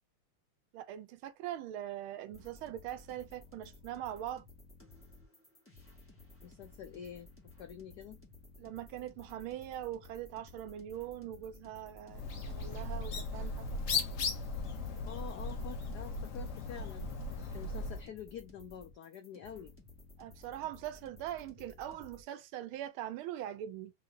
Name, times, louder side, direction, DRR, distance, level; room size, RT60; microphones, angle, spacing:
voice 1, 0.7-4.4 8.6-13.7 13.9-14.0 20.2-23.9, right 12 dB, 80° right, 1.4 m, -42 dB
sound 1, 2.3-22.2, left 2 dB, 5° left, 1.2 m, -56 dB
voice 2, 6.4-7.3 7.6-8.2 15.1-17.1 17.5-19.7, left 8 dB, 85° left, 0.9 m, -47 dB
Bird, 12.1-18.1, left 3 dB, 55° left, 0.9 m, -37 dB
4.0 x 2.7 x 3.8 m
omnidirectional pair, 2.4 m